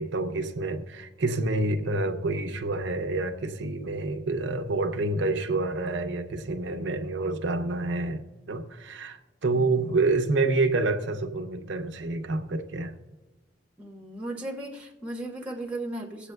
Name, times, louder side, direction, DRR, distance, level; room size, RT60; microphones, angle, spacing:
voice 1, 0.0-12.9, right 2 dB, 70° right, 0.7 m, -28 dB
voice 2, 13.8-16.3, right 1 dB, 5° right, 1.2 m, -36 dB
24.5 x 8.2 x 2.3 m
head